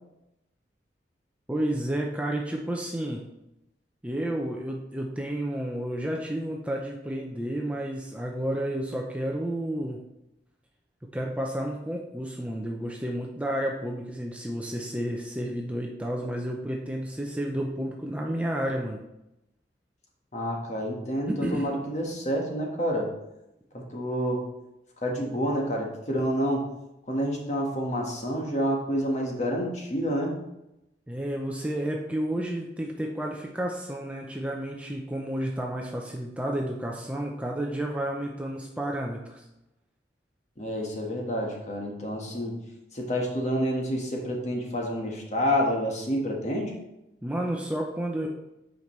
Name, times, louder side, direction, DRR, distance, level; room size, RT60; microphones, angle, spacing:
voice 1, 1.5-3.2 4.0-10.0 11.1-19.0 21.3-21.7 31.1-39.5 47.2-48.3, right 1 dB, 5° right, 0 dB, 0.6 m, -31 dB
voice 2, 20.3-23.1 23.7-24.4 25.0-26.7 27.1-30.4 40.6-42.6 42.9-46.7, equal, 40° left, -1 dB, 1.4 m, -28 dB
8.1 x 5.2 x 3.1 m, 0.89 s
head